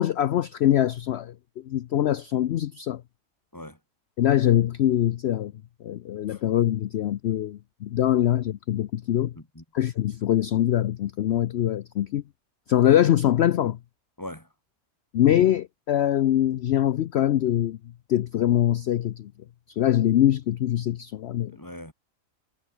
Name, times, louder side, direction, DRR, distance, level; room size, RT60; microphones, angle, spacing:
voice 1, 0.0-1.3 1.6-3.0 4.2-5.5 5.8-9.3 9.7-12.2 12.7-13.8 15.1-17.8 18.1-19.3 19.8-21.6, left 11 dB, 60° left, 0.7 m, -23 dB
voice 2, 14.2-14.5 21.5-21.9, left 1 dB, 15° left, 5.8 m, -40 dB
omnidirectional pair, 1.5 m